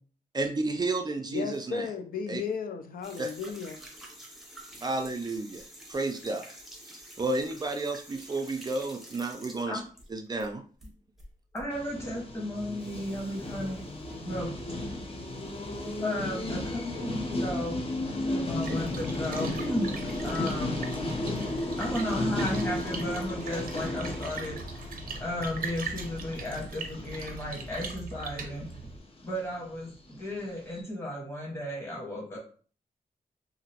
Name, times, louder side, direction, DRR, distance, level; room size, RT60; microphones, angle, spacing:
voice 1, 0.3-1.9 2.3-2.4 3.2-3.3 4.8-5.6 5.9-6.5 6.9-9.8 10.1-10.6, right 2 dB, 30° right, 0.4 m, -31 dB
voice 2, 1.3-3.8, left 6 dB, 80° left, 0.4 m, -34 dB
sound 1, 3.0-10.5 10.8-11.7, right 1 dB, ahead, 0.7 m, -48 dB
voice 3, 11.5-13.8 14.2-14.5 14.9-15.0 16.0-17.8 18.1-19.9 20.2-20.8 21.8-24.6 25.2-28.7 29.2-32.4, left 1 dB, 20° left, 1.3 m, -34 dB
sound 2, 11.7-29.1 29.3-29.6 29.9-30.0 30.2-30.4 30.7-30.8, left 1 dB, 40° left, 0.6 m, -34 dB
Splash splatter, 18.4-29.0, right 3 dB, 90° right, 0.7 m, -41 dB
2.9 x 2.5 x 2.8 m
wide cardioid pair, 130°, 15 cm